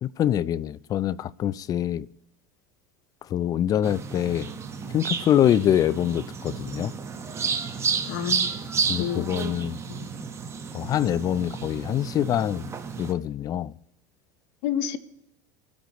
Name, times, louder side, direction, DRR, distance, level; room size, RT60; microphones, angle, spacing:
voice 1, 0.0-2.1 3.2-4.5 4.9-6.9 8.9-9.8 10.7-13.8, left 11 dB, 40° left, 0.5 m, -25 dB
sound 1, 3.8-13.1, right 6 dB, 30° right, 1.3 m, -31 dB
voice 2, 8.1-8.5 9.0-9.3 9.9-10.1 14.6-15.0, left 9 dB, 65° left, 1.0 m, -29 dB
23.0 x 8.4 x 3.1 m
supercardioid pair, 100°, 10 cm